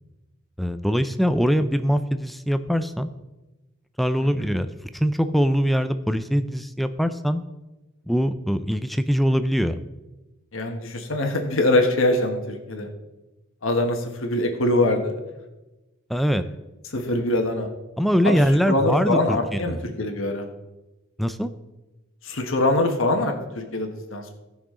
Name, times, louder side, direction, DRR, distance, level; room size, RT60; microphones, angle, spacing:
voice 1, 0.6-3.1 4.0-7.4 8.1-9.8 16.1-16.4 18.0-19.4 19.7-19.8 21.2-21.5, equal, ahead, 11 dB, 0.4 m, -22 dB
voice 2, 10.5-12.9 13.6-15.2 16.9-17.7 18.2-18.4 18.7-20.5 22.2-24.3, left 1 dB, 65° left, 4 dB, 1.3 m, -23 dB
18.0 x 6.2 x 3.7 m, 1.1 s
head